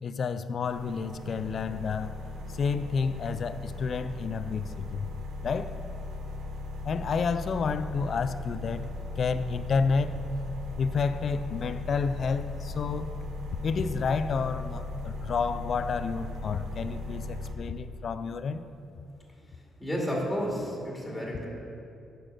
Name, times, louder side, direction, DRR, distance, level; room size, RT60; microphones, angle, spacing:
voice 1, 0.0-2.2 2.5-5.1 5.4-5.7 6.8-8.9 9.2-10.1 10.8-13.2 13.6-18.6, left 5 dB, 50° left, 12 dB, 0.4 m, -30 dB
sound 1, 0.6-17.5, left 2 dB, 75° right, 1.0 m, -38 dB
voice 2, 19.8-21.5, equal, 5° left, -3 dB, 2.5 m, -31 dB
9.1 x 6.2 x 6.6 m, 2.6 s
cardioid pair, 90°, 0 cm